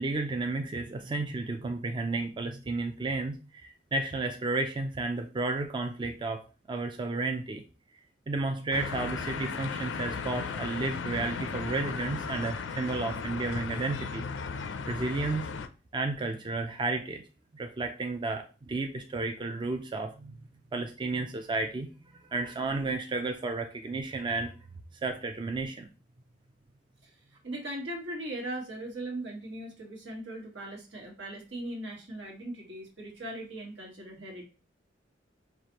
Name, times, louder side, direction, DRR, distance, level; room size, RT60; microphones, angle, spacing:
voice 1, 0.0-7.6 8.3-14.3 14.9-15.5 15.9-17.2 17.5-20.4 20.7-21.9 22.3-24.5 25.0-25.9, right 3 dB, 25° right, 5 dB, 0.3 m, -32 dB
sound 1, 8.7-15.7, left 5 dB, 90° left, 0.4 m, -36 dB
voice 2, 27.4-34.5, right 1 dB, 80° right, 0 dB, 1.4 m, -39 dB
4.7 x 2.4 x 2.9 m, 0.33 s
head